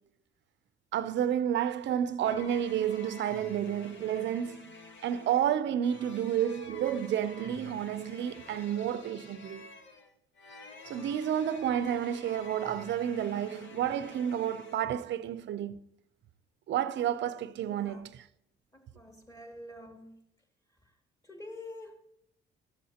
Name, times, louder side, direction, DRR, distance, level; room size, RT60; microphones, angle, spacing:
voice 1, 0.9-4.7 5.0-9.7 10.9-15.8 16.7-18.3, right 10 dB, 65° right, 0.6 m, -31 dB
sound 1, 2.2-14.8, left 3 dB, 70° left, 1.2 m, -49 dB
voice 2, 17.6-18.1 18.7-20.2 21.2-21.9, left 1 dB, 15° left, 2.2 m, -47 dB
13.5 x 7.4 x 2.8 m
cardioid pair, 90°, 20 cm